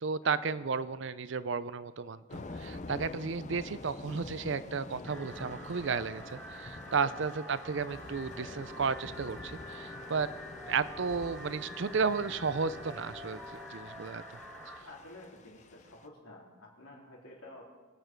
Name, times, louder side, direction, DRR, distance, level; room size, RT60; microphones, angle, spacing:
voice 1, 0.0-10.3 10.7-14.2 14.7-14.8, right 5 dB, 60° right, 15 dB, 0.5 m, -33 dB
Thunder / Rain, 2.3-16.1, left 2 dB, 35° left, 0.6 m, -47 dB
sound 1, 5.0-14.8, equal, 5° left, 1.8 m, -47 dB
sound 2, 7.9-13.7, left 4 dB, 85° right, 4.5 m, -53 dB
voice 2, 10.0-10.3 14.8-17.6, left 1 dB, 85° left, -3 dB, 3.8 m, -51 dB
23.0 x 8.9 x 4.6 m, 1.4 s
head